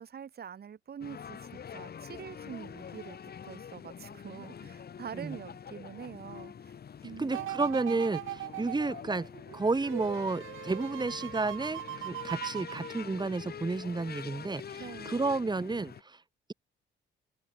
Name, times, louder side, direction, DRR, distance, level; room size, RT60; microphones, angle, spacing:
voice 1, 0.0-6.7 7.0-7.5 7.8-8.0 14.8-15.2, right 8 dB, 50° right, 5.3 m, -45 dB
sound 1, 1.0-16.0, left 7 dB, 50° left, 7.1 m, -45 dB
voice 2, 7.2-9.3 9.5-16.2, right 3 dB, 20° right, 3.8 m, -31 dB
sound 2, 7.3-13.6 14.0-14.1, right 15 dB, 90° right, 7.3 m, -40 dB
open air
cardioid pair, 90°, 20 cm